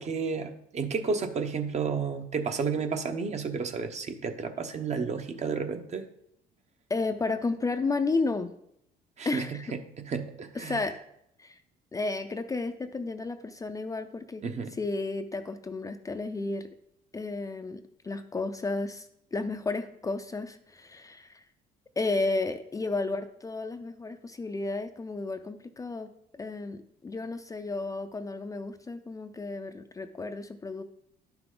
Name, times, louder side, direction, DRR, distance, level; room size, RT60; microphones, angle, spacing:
voice 1, 0.0-6.0 9.2-9.5 10.0-10.8 14.4-14.7, right 5 dB, 40° right, 7 dB, 1.0 m, -31 dB
voice 2, 6.9-8.5 9.2-9.7 10.5-11.0 11.4-11.6 11.9-14.4 14.8-16.7 17.1-21.5 22.0-30.8, left 3 dB, 20° left, 8 dB, 0.5 m, -32 dB
10.5 x 5.9 x 3.9 m, 0.75 s
cardioid pair, 110°, 17 cm